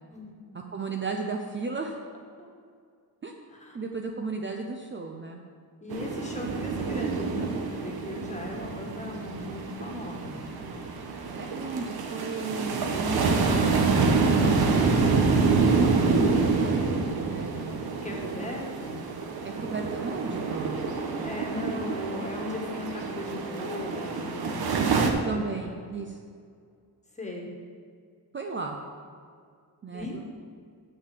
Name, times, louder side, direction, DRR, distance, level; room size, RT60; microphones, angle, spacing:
voice 1, 0.7-2.0 3.2-3.3 3.7-5.4 11.3-14.0 15.2-17.9 18.4-18.5 19.4-21.0 25.2-26.2 28.3-28.8 29.8-30.2, right 4 dB, 30° right, 2 dB, 0.6 m, -35 dB
voice 2, 5.8-10.8 18.0-19.0 21.2-25.4 27.1-27.5 29.9-30.2, left 2 dB, 20° left, 0 dB, 1.6 m, -38 dB
sound 1, 5.9-25.1, right 4 dB, 70° right, 1.1 m, -27 dB
6.6 x 6.4 x 7.6 m, 2.2 s
wide cardioid pair, 145°, 38 cm